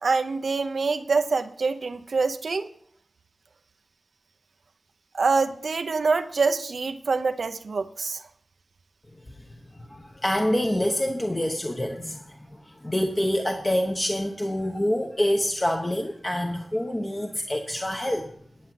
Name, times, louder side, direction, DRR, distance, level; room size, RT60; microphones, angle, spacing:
voice 1, 0.0-2.7 5.1-8.2, right 4 dB, 70° right, 8 dB, 0.8 m, -25 dB
voice 2, 9.3-18.3, left 1 dB, 20° left, 2 dB, 1.1 m, -27 dB
10.5 x 8.3 x 5.9 m, 0.62 s
wide cardioid pair, 90°, 0 cm